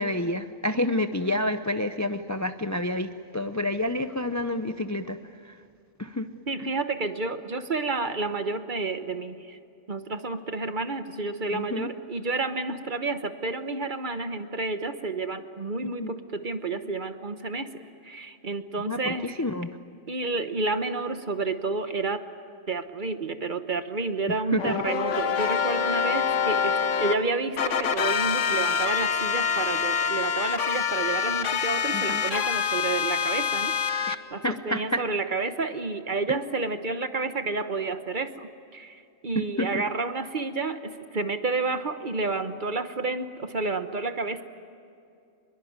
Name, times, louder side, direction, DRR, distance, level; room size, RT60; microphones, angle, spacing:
voice 1, 0.0-5.2 5.4-5.5 6.0-6.3 11.5-11.9 15.8-16.1 18.9-19.8 24.5-24.8 31.9-32.2 34.1-34.2 34.4-35.0 36.3-36.4 39.4-39.8, left 1 dB, 20° left, 9 dB, 0.5 m, -29 dB
voice 2, 6.5-9.6 9.9-19.3 20.1-22.2 22.7-44.4, right 3 dB, 40° right, 9 dB, 1.2 m, -30 dB
sound 1, 24.6-27.1 27.6-34.1, left 7 dB, 70° left, 1.3 m, -26 dB
26.0 x 22.0 x 9.5 m, 2.5 s
omnidirectional pair, 1.3 m